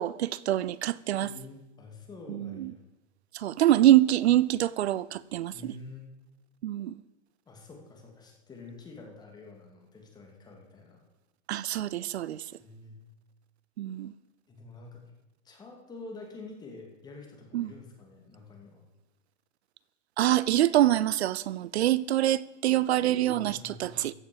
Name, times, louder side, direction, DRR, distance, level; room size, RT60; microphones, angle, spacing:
voice 1, 0.0-1.3 2.3-2.7 3.3-5.7 6.6-7.0 11.5-12.4 13.8-14.1 17.5-17.7 20.2-24.1, right 13 dB, 60° right, 0.7 m, -25 dB
voice 2, 1.2-2.8 5.5-6.0 7.5-11.0 12.6-13.0 14.5-15.0 15.4-18.8 23.2-24.1, left 3 dB, 10° left, 2.4 m, -47 dB
14.5 x 8.0 x 6.9 m
hypercardioid pair, 155°, 37 cm